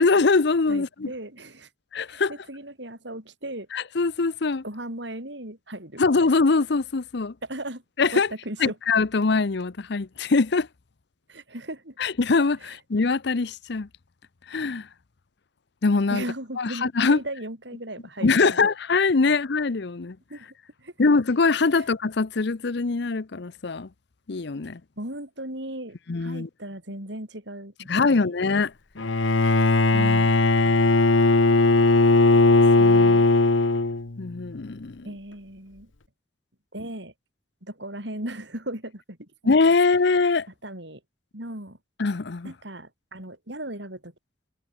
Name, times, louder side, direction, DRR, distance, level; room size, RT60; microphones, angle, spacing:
voice 1, 0.0-1.1 1.9-2.3 3.7-4.6 6.0-7.3 8.0-8.3 8.6-10.7 12.0-13.9 14.5-14.9 15.8-16.2 16.6-17.2 18.2-20.2 21.0-23.9 24.3-24.8 26.1-26.5 27.9-28.7 32.8-33.2 34.2-35.0 39.4-40.5 42.0-42.5, left 4 dB, 60° left, 0.7 m, -23 dB
voice 2, 0.7-1.7 2.1-3.7 4.6-6.0 7.4-7.8 8.1-8.8 11.3-11.9 12.6-12.8 16.1-18.7 20.3-20.5 20.8-20.9 21.7-21.8 25.0-28.3 29.9-30.3 35.0-35.9 36.7-37.1 37.6-39.5 40.6-41.0 41.3-41.8 42.4-44.1, right 1 dB, 65° right, 8.0 m, -37 dB
Bowed string instrument, 29.0-34.2, left 2 dB, 80° left, 1.2 m, -18 dB
head